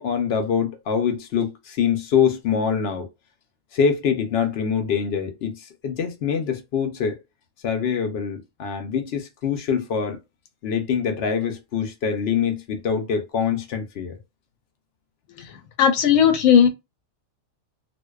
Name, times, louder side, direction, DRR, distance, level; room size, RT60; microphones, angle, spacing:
voice 1, 0.0-3.1 3.7-7.2 7.6-10.2 10.6-14.1, left 7 dB, 60° left, 0.7 m, -24 dB
voice 2, 15.4-16.7, left 8 dB, 80° left, 1.0 m, -17 dB
2.5 x 2.1 x 2.3 m
omnidirectional pair, 1.4 m